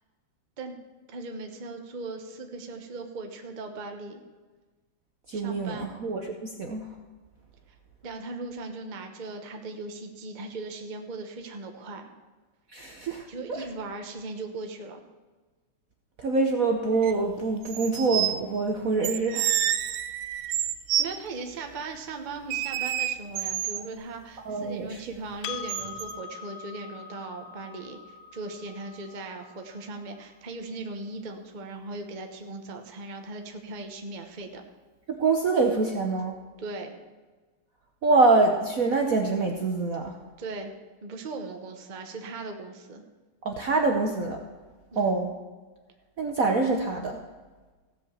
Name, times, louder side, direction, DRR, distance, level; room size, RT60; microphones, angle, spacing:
voice 1, 1.1-4.2 5.3-5.9 8.0-12.1 13.3-15.0 21.0-34.6 36.6-36.9 40.4-40.7 41.0-43.0 44.9-45.1, right 3 dB, 35° right, 4 dB, 0.8 m, -38 dB
voice 2, 5.3-6.9 12.7-13.6 16.2-19.6 24.4-25.0 35.1-36.4 38.0-40.2 43.4-44.4 44.9-45.4 46.2-47.2, right 3 dB, 55° right, 2 dB, 1.0 m, -25 dB
sound 1, 17.0-17.1 17.6-18.4 19.0-21.1 22.5-23.9 25.7-26.1, right 12 dB, 90° right, 1.5 m, -28 dB
Percussion, 25.4-30.3, left 7 dB, 75° left, 1.4 m, -42 dB
15.5 x 5.5 x 7.3 m, 1.3 s
omnidirectional pair, 2.4 m